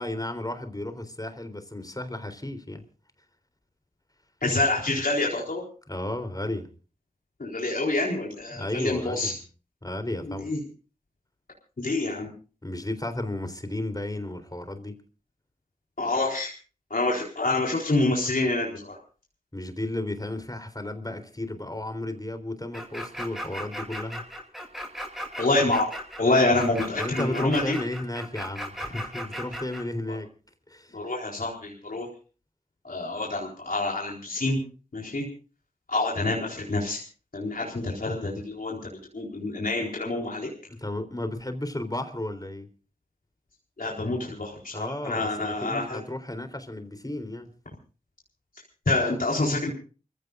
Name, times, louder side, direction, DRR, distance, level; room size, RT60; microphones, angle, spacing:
voice 1, 0.0-2.8 5.9-6.7 8.5-9.4 9.8-10.5 12.6-15.0 19.5-24.2 26.9-30.3 30.7-31.0 40.7-42.7 44.7-47.5, left 1 dB, 25° left, 3.8 m, -33 dB
voice 2, 4.4-5.6 7.4-9.3 10.4-10.6 11.8-12.3 16.0-16.5 16.9-19.0 25.4-25.9 26.2-27.8 30.1-30.2 30.9-32.1 32.8-34.6 34.9-35.2 35.9-37.0 37.3-40.5 43.8-46.0 48.9-49.7, left 2 dB, 75° left, 4.2 m, -27 dB
sound 1, 22.7-29.8, equal, 5° right, 7.7 m, -36 dB
28.5 x 16.0 x 2.6 m
wide cardioid pair, 40°, 15 cm